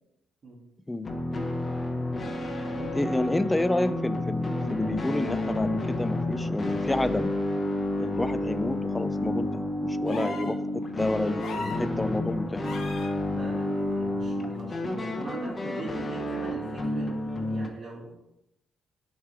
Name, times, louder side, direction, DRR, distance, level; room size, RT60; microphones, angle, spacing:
sound 1, 1.0-17.7, left 1 dB, 30° left, 0.9 m, -30 dB
voice 1, 2.9-7.3 8.0-12.6, left 2 dB, 15° left, 13 dB, 0.3 m, -30 dB
sound 2, 10.1-10.6 11.4-11.9 12.6-13.1 14.6-14.7, left 3 dB, 65° left, 0.9 m, -36 dB
voice 2, 13.2-18.2, right 2 dB, 50° right, -6 dB, 1.7 m, -41 dB
6.6 x 3.2 x 4.8 m, 0.83 s
cardioid pair, 90°, 0 cm